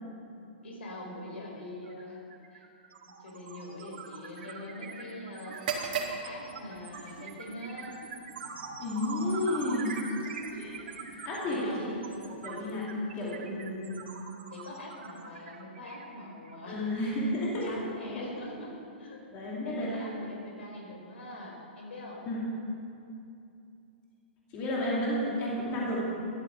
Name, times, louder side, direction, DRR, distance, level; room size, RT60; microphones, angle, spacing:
voice 1, 0.6-2.2 2.5-2.6 3.2-5.7 5.9-8.0 11.4-11.9 13.4-14.0 14.5-16.9 17.4-19.2 19.6-22.2, left 1 dB, 90° left, 0 dB, 4.4 m, -43 dB
sound 1, 1.8-2.0 2.3-16.6, right 5 dB, 75° right, 2.0 m, -43 dB
sound 2, 5.5-13.3, right 6 dB, 50° right, 1.7 m, -42 dB
voice 2, 8.8-9.9 10.5-10.8 11.2-12.0 12.2-14.0 16.7-17.7 18.1-18.2 19.3-20.0 22.3-22.4 24.5-26.0, left 1 dB, 25° left, -5 dB, 2.5 m, -32 dB
12.5 x 10.5 x 7.8 m, 2.6 s
hypercardioid pair, 175°, 6 cm